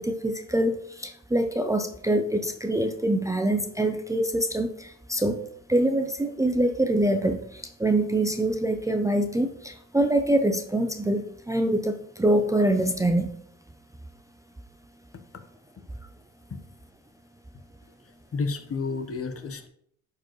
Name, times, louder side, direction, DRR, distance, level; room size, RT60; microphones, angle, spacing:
voice 1, 0.0-5.4 5.7-13.3, right 1 dB, 10° right, 5 dB, 0.6 m, -25 dB
voice 2, 18.0-19.7, left 4 dB, 45° left, 7 dB, 1.1 m, -31 dB
11.0 x 4.8 x 3.1 m, 0.70 s
cardioid pair, 90°, 33 cm